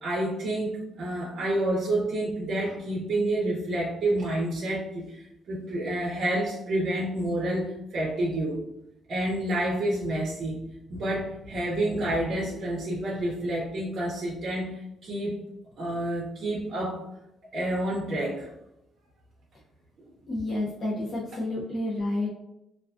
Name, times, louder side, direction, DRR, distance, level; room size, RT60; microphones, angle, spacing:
voice 1, 0.0-8.6 9.1-10.6 10.9-15.4 15.8-17.0 17.5-18.5 20.0-20.1, right 1 dB, 60° right, -4 dB, 0.6 m, -29 dB
voice 2, 20.3-22.3, left 1 dB, 35° left, -6 dB, 0.6 m, -30 dB
2.4 x 2.2 x 2.4 m, 0.85 s
cardioid pair, 90°, 0 cm